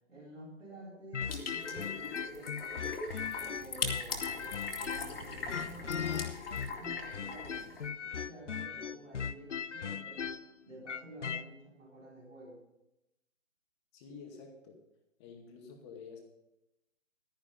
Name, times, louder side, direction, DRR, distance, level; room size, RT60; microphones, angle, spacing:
voice 1, 0.1-2.9 3.3-4.2 4.8-6.2 6.6-10.3 10.6-12.6, right 2 dB, 70° right, -3 dB, 4.3 m, -51 dB
sound 1, 1.1-5.2 5.5-11.5, left 7 dB, 65° left, 0.7 m, -38 dB
sound 2, 1.3-7.9, left 3 dB, 50° left, 2.5 m, -41 dB
voice 2, 13.9-14.8 15.2-16.2, left 5 dB, 20° left, 2 dB, 2.1 m, -49 dB
13.0 x 10.0 x 5.3 m, 0.90 s
figure-of-eight pair, 140°, 38 cm